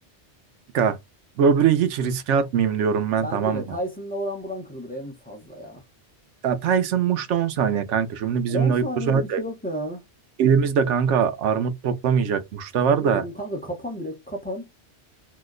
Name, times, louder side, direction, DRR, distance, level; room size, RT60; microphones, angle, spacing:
voice 1, 1.4-3.7 6.4-9.4 10.4-13.2, right 7 dB, 90° right, 0.9 m, -22 dB
voice 2, 3.2-5.8 8.5-10.0 12.9-14.7, equal, 10° left, 0.7 m, -32 dB
2.8 x 2.1 x 3.6 m
omnidirectional pair, 1.2 m